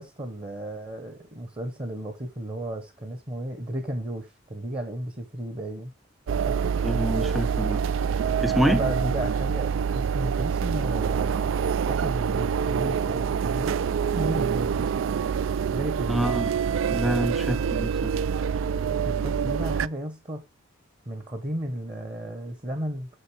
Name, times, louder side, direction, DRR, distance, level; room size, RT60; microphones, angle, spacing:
voice 1, 0.0-5.9 6.6-6.7 8.6-13.8 14.2-14.9 15.7-16.4 18.9-20.4 21.1-23.1, right 1 dB, 30° right, 1.0 m, -34 dB
sound 1, 6.3-19.9, right 7 dB, 75° right, 0.3 m, -26 dB
voice 2, 6.8-7.8 8.4-8.8 16.1-16.5 16.9-17.9, equal, ahead, 0.4 m, -26 dB
6.6 x 6.4 x 4.7 m
head